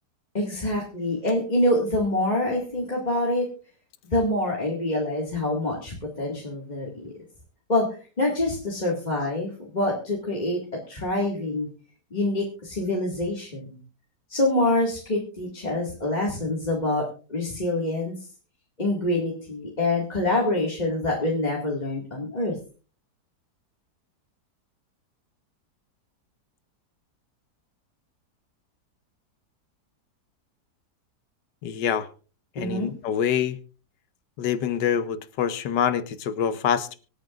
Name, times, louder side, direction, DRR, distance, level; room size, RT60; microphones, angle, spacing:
voice 1, 0.3-3.5 4.0-7.1 7.7-7.9 8.2-10.6 10.9-11.7 12.1-13.8 14.3-17.0 17.3-18.1 18.8-22.6 32.6-32.9, left 1 dB, 25° left, 2.2 m, -26 dB
voice 2, 31.6-32.1 32.6-33.6 34.4-37.0, left 8 dB, 90° left, 1.6 m, -25 dB
25.0 x 9.0 x 2.5 m
omnidirectional pair, 1.8 m